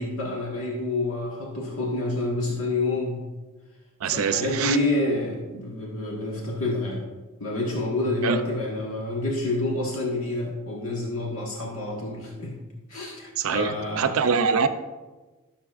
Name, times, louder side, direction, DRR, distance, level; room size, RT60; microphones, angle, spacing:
voice 1, 0.0-3.2 4.1-7.1 7.4-12.5 12.9-14.1, left 2 dB, 70° left, -2 dB, 1.5 m, -28 dB
voice 2, 4.0-4.8 8.2-8.4 13.4-14.7, right 6 dB, 70° right, 9 dB, 0.5 m, -24 dB
12.0 x 7.0 x 2.5 m, 1.2 s
head